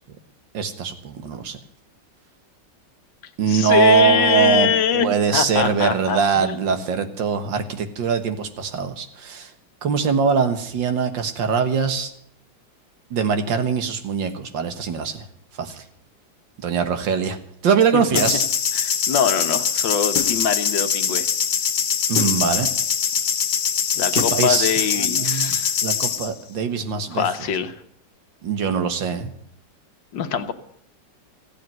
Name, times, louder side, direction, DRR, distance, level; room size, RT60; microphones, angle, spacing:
voice 1, 0.5-1.6 3.4-9.5 9.8-12.1 13.1-15.3 15.6-15.8 16.6-17.4 17.6-18.4 22.1-22.7 24.1-24.7 25.0-25.6 25.8-27.2 28.4-29.3, right 6 dB, 85° right, 8 dB, 2.1 m, -22 dB
voice 2, 3.5-6.6 17.9-18.0 18.7-21.3 23.9-25.7 27.1-27.8 30.1-30.5, left 7 dB, 90° left, 9 dB, 1.8 m, -23 dB
sound 1, 18.2-26.3, left 8 dB, 70° left, 1.7 m, -22 dB
15.0 x 8.7 x 9.1 m, 0.70 s
omnidirectional pair, 2.0 m